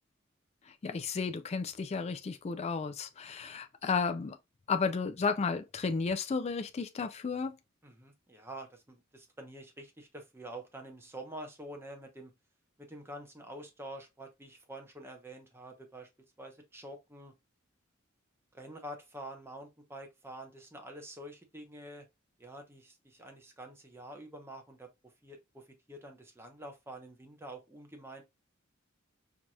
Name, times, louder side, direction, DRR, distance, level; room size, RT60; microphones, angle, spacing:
voice 1, 0.6-4.4 4.7-7.6, left 5 dB, 30° left, 0.4 m, -33 dB
voice 2, 7.8-12.3 12.8-16.1 16.4-17.3 18.5-22.1 22.4-24.9 25.2-28.2, right 1 dB, 10° right, 0.9 m, -47 dB
4.6 x 2.8 x 2.3 m
head